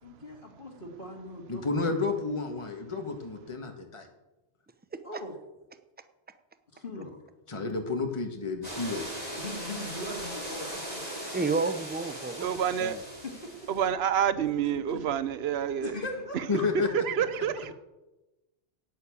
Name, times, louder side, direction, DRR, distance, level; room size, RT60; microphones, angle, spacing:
voice 1, 0.0-1.8 2.1-2.3 5.0-5.4 6.7-7.1 9.4-11.0 13.2-13.7 14.6-15.0 15.8-16.9, left 2 dB, 50° left, 2 dB, 2.1 m, -40 dB
voice 2, 1.5-4.1 6.9-7.0 7.5-9.1 16.5-17.0, left 3 dB, 25° left, 3 dB, 1.7 m, -31 dB
sound 1, 8.6-13.9, right 1 dB, 35° right, 4.4 m, -39 dB
voice 3, 11.3-13.0, right 4 dB, 10° right, 10 dB, 0.5 m, -31 dB
voice 4, 12.4-13.0 13.7-16.0 16.9-17.7, right 9 dB, 65° right, 14 dB, 1.0 m, -28 dB
10.0 x 9.8 x 8.5 m, 1.0 s
omnidirectional pair, 1.2 m